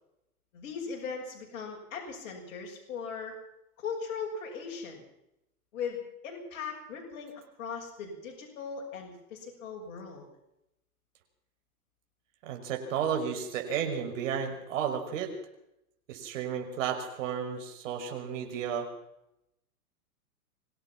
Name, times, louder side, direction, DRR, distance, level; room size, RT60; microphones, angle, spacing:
voice 1, 0.5-3.4 3.8-5.0 5.7-10.3, left 5 dB, 55° left, 0 dB, 6.8 m, -39 dB
voice 2, 12.4-15.3 16.1-18.9, right 8 dB, 55° right, 3 dB, 5.9 m, -33 dB
25.0 x 17.5 x 6.0 m, 0.84 s
hypercardioid pair, 145°, 45 cm